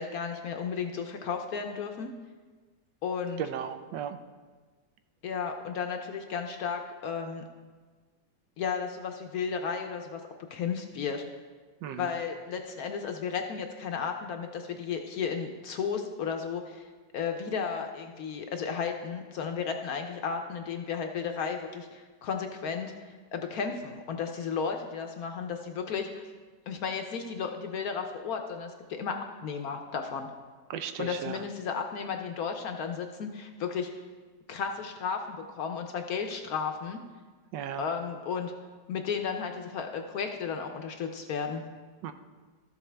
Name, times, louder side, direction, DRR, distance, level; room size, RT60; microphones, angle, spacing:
voice 1, 0.0-2.1 3.0-3.4 5.2-7.4 8.6-10.2 10.5-11.2 12.0-16.9 17.1-26.3 26.7-29.2 29.4-30.3 31.0-33.9 34.5-37.0 37.8-38.5 38.9-41.6, left 6 dB, 70° left, 5 dB, 0.9 m, -34 dB
voice 2, 3.4-4.2 11.8-12.1 30.7-31.4 37.5-37.9 42.0-42.1, right 8 dB, 80° right, 9 dB, 1.3 m, -35 dB
13.0 x 7.1 x 3.3 m, 1.4 s
omnidirectional pair, 2.0 m